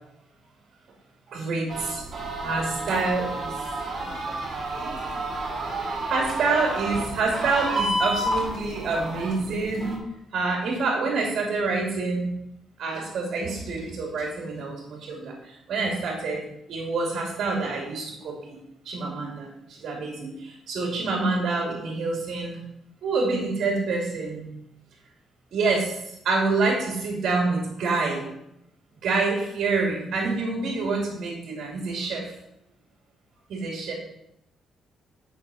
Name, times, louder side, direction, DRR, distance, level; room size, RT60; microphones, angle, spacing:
voice 1, 1.3-2.0 2.4-3.5 4.0-4.2 4.8-5.0 6.1-9.9 10.3-12.3 12.8-18.6 18.8-22.6 23.0-24.5 25.5-28.3 29.0-32.3 33.5-33.9, right 3 dB, 65° right, -1 dB, 2.4 m, -27 dB
sound 1, 1.7-10.0, right 1 dB, 45° right, 2.4 m, -30 dB
8.9 x 6.2 x 4.2 m, 0.82 s
cardioid pair, 90°, 0 cm